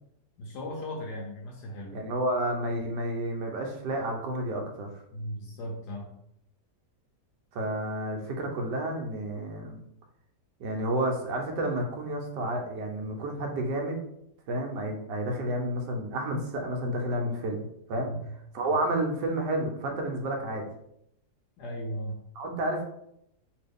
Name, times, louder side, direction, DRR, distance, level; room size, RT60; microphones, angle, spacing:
voice 1, 0.4-2.0 5.1-6.1 18.0-18.2 21.6-22.2, equal, 80° left, -1 dB, 1.2 m, -37 dB
voice 2, 1.9-4.9 7.5-9.8 10.6-14.0 14.5-18.1 18.5-20.6 22.4-22.8, right 1 dB, 80° right, 2 dB, 1.3 m, -30 dB
3.0 x 2.7 x 3.4 m, 0.76 s
omnidirectional pair, 1.8 m